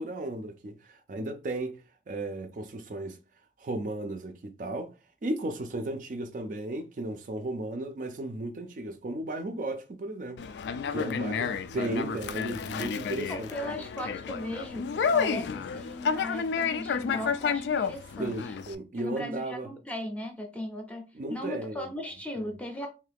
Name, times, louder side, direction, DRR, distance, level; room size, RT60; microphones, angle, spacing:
voice 1, 0.0-3.2 3.6-4.9 5.2-13.8 18.2-19.7 21.1-21.9 22.4-22.5, right 2 dB, 45° right, 0.4 m, -35 dB
Conversation, 10.4-18.7, left 6 dB, 80° left, 0.3 m, -31 dB
voice 2, 13.3-18.6 18.9-22.9, left 1 dB, 10° left, 0.5 m, -37 dB
2.7 x 2.3 x 3.4 m
head